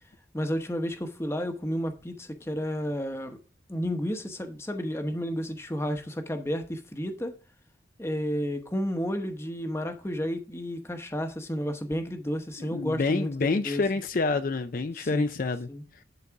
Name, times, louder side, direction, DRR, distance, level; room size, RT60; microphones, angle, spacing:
voice 1, 0.3-3.4 3.7-7.3 8.0-13.8 15.0-15.3 15.7-15.8, equal, 15° left, 0.9 m, -31 dB
voice 2, 12.7-15.7, left 3 dB, 50° left, 0.5 m, -27 dB
11.0 x 4.0 x 4.6 m
head